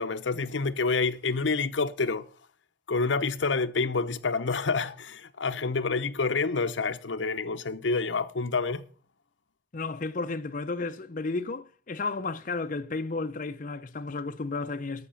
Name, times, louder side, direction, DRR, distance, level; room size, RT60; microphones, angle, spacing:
voice 1, 0.0-2.2 2.9-8.8, left 4 dB, 80° left, 0.8 m, -28 dB
voice 2, 9.7-15.1, left 3 dB, 45° left, 0.6 m, -33 dB
13.0 x 6.0 x 7.0 m
head